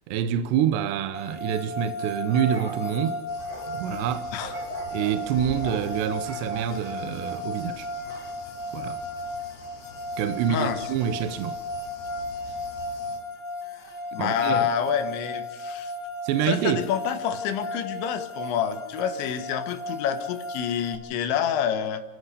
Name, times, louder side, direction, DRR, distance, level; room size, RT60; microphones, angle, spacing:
voice 1, 0.1-3.2 3.7-4.3 4.9-7.9 8.7-9.0 10.2-11.6 14.2-14.7 16.2-16.9, right 9 dB, 75° right, 3.0 m, -27 dB
sound 1, 1.1-20.9, left 1 dB, 45° left, 1.3 m, -35 dB
sound 2, 2.0-3.7 4.4-5.2 5.6-5.9 6.2-6.7 7.3-7.5 8.1-8.3, right 2 dB, 50° right, 6.3 m, -40 dB
sound 3, 3.3-13.2, left 5 dB, 65° left, 5.5 m, -46 dB
voice 2, 10.5-10.8 14.1-15.9 16.4-22.0, left 9 dB, 80° left, 3.7 m, -27 dB
29.5 x 14.5 x 6.7 m
omnidirectional pair, 5.2 m